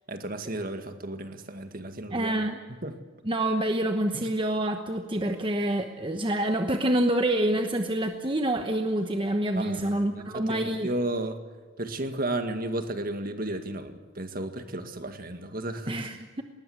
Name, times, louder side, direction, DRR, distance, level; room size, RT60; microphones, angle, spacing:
voice 1, 0.1-2.4 2.8-3.0 4.1-4.3 9.6-11.4 11.8-16.1, right 1 dB, 45° right, 7 dB, 2.0 m, -33 dB
voice 2, 2.1-2.6 3.2-10.9 15.9-16.4, right 1 dB, 25° right, 6 dB, 1.0 m, -27 dB
20.0 x 19.5 x 9.4 m, 1.4 s
head